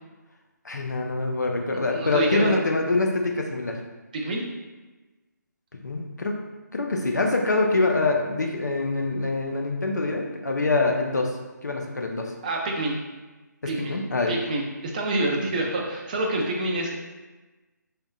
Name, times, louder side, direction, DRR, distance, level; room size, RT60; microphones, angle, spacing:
voice 1, 0.6-3.8 5.7-6.4 6.7-11.3 11.6-12.3 13.6-14.3, left 3 dB, 65° left, 1 dB, 0.7 m, -25 dB
voice 2, 1.9-2.5 4.1-4.4 12.4-13.0 13.7-14.0 14.3-17.0, right 2 dB, 25° right, -1 dB, 0.5 m, -27 dB
4.3 x 3.3 x 2.4 m, 1.2 s
figure-of-eight pair, 150°, 10 cm